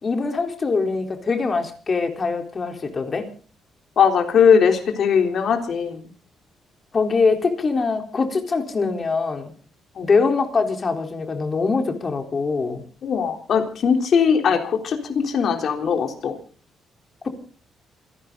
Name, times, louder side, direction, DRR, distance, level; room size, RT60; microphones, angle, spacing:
voice 1, 0.0-3.3 6.9-9.5 10.0-12.8, left 4 dB, 35° left, 5 dB, 3.9 m, -23 dB
voice 2, 4.0-6.1 10.0-10.1 13.0-16.4, left 6 dB, 60° left, 4 dB, 3.6 m, -19 dB
28.0 x 11.5 x 4.0 m, 0.40 s
cardioid pair, 90°, 0 cm